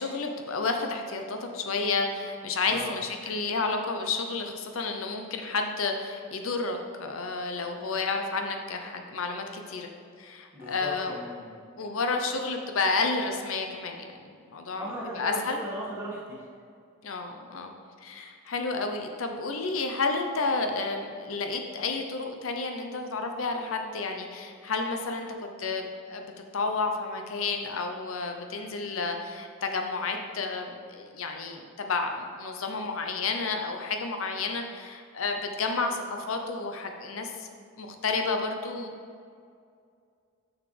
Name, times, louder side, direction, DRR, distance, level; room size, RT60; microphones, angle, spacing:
voice 1, 0.0-9.9 10.2-11.2 11.8-14.9 15.1-15.6 17.0-17.7 18.0-37.5 37.8-38.9, left 4 dB, 75° left, 4 dB, 0.6 m, -31 dB
voice 2, 2.7-3.0 10.5-11.6 14.8-16.4, equal, 10° right, -8 dB, 1.9 m, -37 dB
7.3 x 6.8 x 3.3 m, 2.3 s
head